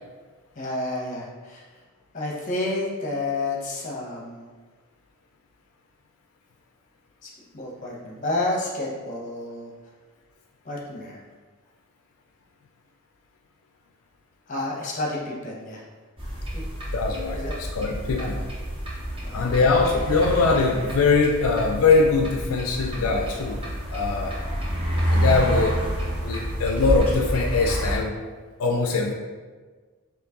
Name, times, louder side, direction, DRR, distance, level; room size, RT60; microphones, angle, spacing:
voice 1, 0.6-1.6 2.1-4.5 7.2-9.7 10.6-11.2 14.5-15.8 16.5-16.6 17.3-17.5 18.2-18.4 19.2-19.5, left 2 dB, 35° left, -2 dB, 0.7 m, -30 dB
sound 1, 16.2-28.0, equal, 25° right, 0.7 m, -28 dB
voice 2, 16.9-18.4 19.3-23.6 23.9-24.4 25.1-25.8 26.2-28.1 28.6-29.1, left 4 dB, 70° left, 1 dB, 0.4 m, -22 dB
4.4 x 2.9 x 2.8 m, 1.4 s
head